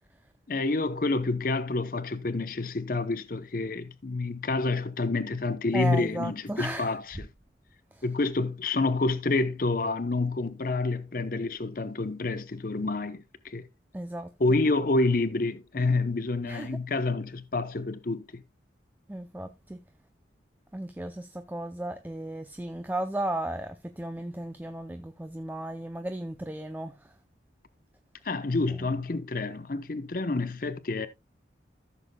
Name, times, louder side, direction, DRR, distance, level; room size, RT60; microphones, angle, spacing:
voice 1, 0.5-7.2 8.0-13.7 14.4-18.4 28.2-31.1, left 3 dB, 45° left, 0.7 m, -28 dB
voice 2, 5.7-7.0 7.9-8.0 13.9-14.3 16.4-16.8 19.1-19.8 20.7-27.2 28.7-28.9, right 1 dB, 10° right, 0.4 m, -35 dB
15.0 x 6.9 x 2.2 m
head